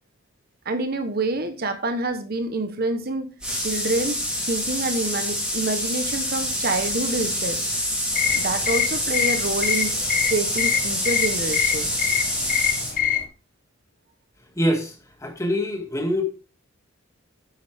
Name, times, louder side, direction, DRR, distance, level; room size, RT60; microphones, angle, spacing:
voice 1, 0.6-7.6 8.3-10.0 10.3-11.9, right 2 dB, 45° right, 1.1 m, -27 dB
sound 1, 3.4-12.9, equal, 5° right, 3.9 m, -26 dB
sound 2, 8.1-13.3, left 9 dB, 40° left, 1.4 m, -25 dB
voice 2, 14.6-14.9 15.2-16.2, equal, 15° left, 2.1 m, -24 dB
11.0 x 8.9 x 3.5 m
head